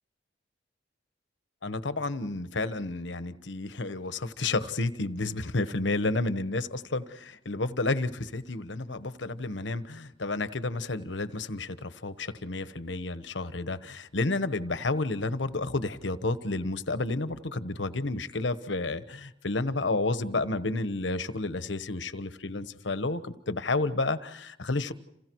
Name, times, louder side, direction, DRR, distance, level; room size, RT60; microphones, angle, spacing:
voice 1, 1.6-24.9, left 2 dB, 90° left, 12 dB, 1.2 m, -31 dB
30.0 x 28.5 x 4.7 m, 0.81 s
head